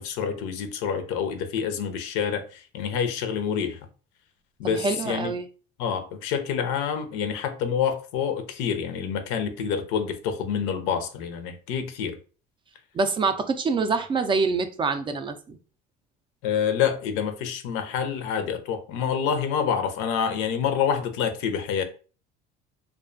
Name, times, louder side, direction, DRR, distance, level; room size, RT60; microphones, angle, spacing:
voice 1, 0.0-3.8 4.6-5.3 5.8-12.2 16.4-21.8, left 7 dB, 75° left, 0.5 m, -27 dB
voice 2, 4.6-5.4 12.9-15.6, right 4 dB, 25° right, 0.3 m, -25 dB
2.4 x 2.2 x 2.4 m
supercardioid pair, 95°, 20 cm